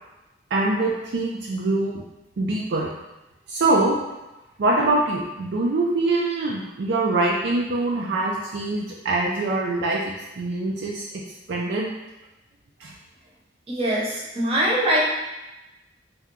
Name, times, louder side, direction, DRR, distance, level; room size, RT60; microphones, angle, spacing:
voice 1, 0.5-2.0 2.4-2.9 3.5-4.0 4.6-10.0 10.4-11.1 11.5-11.9 12.8-12.9, right 2 dB, 65° right, -3 dB, 0.4 m, -23 dB
voice 2, 13.7-15.0, right 1 dB, 35° right, -5 dB, 0.8 m, -22 dB
2.8 x 2.2 x 3.6 m, 1.0 s
head